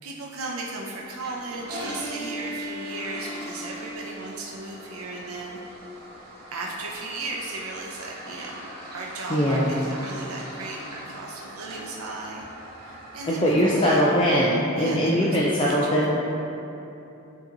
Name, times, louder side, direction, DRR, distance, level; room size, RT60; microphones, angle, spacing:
voice 1, 0.0-5.6 6.5-8.7 8.9-12.5 12.7-14.1 14.7-16.1, right 2 dB, 85° right, -2 dB, 0.6 m, -36 dB
Toilet flush, 1.0-14.0, equal, 45° right, 1.2 m, -41 dB
Bowed string instrument, 1.6-5.3, right 1 dB, 10° right, 0.9 m, -39 dB
voice 2, 9.3-9.7 13.3-16.1, equal, 25° left, -6 dB, 0.5 m, -21 dB
8.5 x 2.9 x 3.9 m, 2.9 s
head